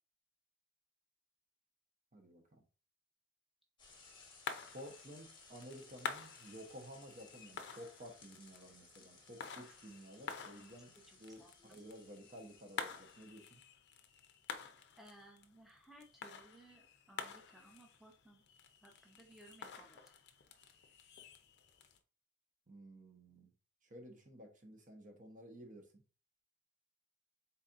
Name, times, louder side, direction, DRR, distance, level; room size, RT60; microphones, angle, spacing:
voice 1, 2.1-2.6 4.7-13.6 22.7-23.5 23.8-26.0, equal, 40° right, 3 dB, 0.9 m, -53 dB
sound 1, 3.8-22.0, left 6 dB, 55° left, 0.5 m, -50 dB
sound 2, 3.8-13.3, left 3 dB, 20° left, 1.2 m, -62 dB
voice 2, 11.1-11.8 15.0-18.4 18.8-20.0, right 1 dB, ahead, 0 dB, 0.8 m, -61 dB
4.0 x 4.0 x 2.5 m, 0.36 s
head